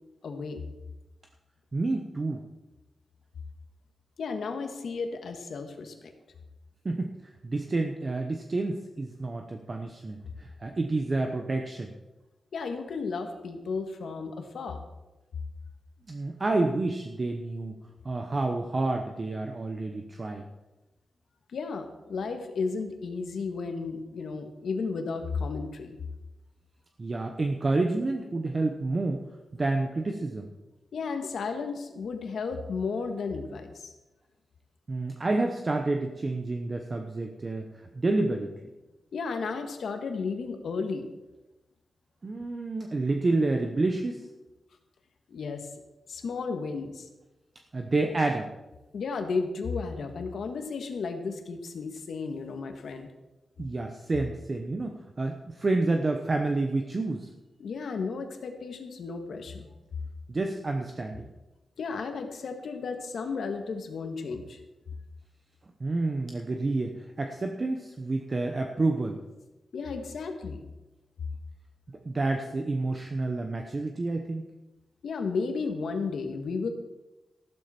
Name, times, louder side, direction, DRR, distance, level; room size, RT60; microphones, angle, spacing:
voice 1, 0.2-0.6 4.2-6.1 12.5-14.8 21.5-26.0 30.9-33.9 39.1-41.1 45.3-45.7 46.1-47.1 48.9-53.1 57.6-59.7 61.8-64.6 69.7-70.6 75.0-76.7, left 4 dB, 70° left, 5 dB, 1.7 m, -33 dB
voice 2, 1.7-2.4 6.8-11.9 16.1-17.7 18.0-20.4 27.0-29.2 29.5-30.5 34.9-37.7 37.9-38.5 42.2-44.3 47.7-48.5 53.6-57.3 60.3-61.3 65.8-69.2 72.0-74.4, right 2 dB, 30° right, 4 dB, 0.9 m, -29 dB
14.0 x 12.0 x 4.4 m, 1.1 s
wide cardioid pair, 155°, 0 cm